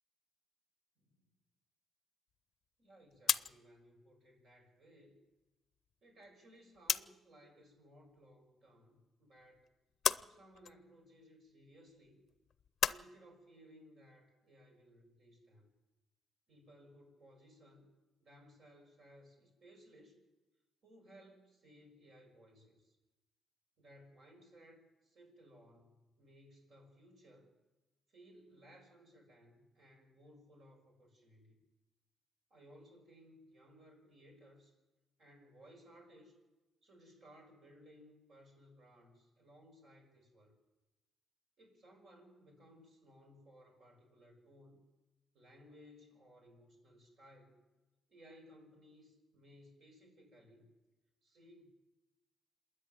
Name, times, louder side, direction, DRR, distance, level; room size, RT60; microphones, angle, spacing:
sound 1, 2.3-7.3 7.6-8.7 9.0-13.0, left 8 dB, 55° left, 0.6 m, -38 dB
voice 1, 2.8-5.2 6.0-9.7 10.1-12.2 12.8-15.7 16.5-17.9 18.2-20.3 20.8-23.0 23.8-27.5 28.1-31.6 32.5-34.7 35.2-36.4 36.8-40.6 41.6-44.8 45.3-47.6 48.1-50.7 51.2-51.7, equal, 60° right, 2 dB, 6.5 m, -61 dB
27.5 x 10.5 x 9.3 m, 1.1 s
cardioid pair, 90°, 0 cm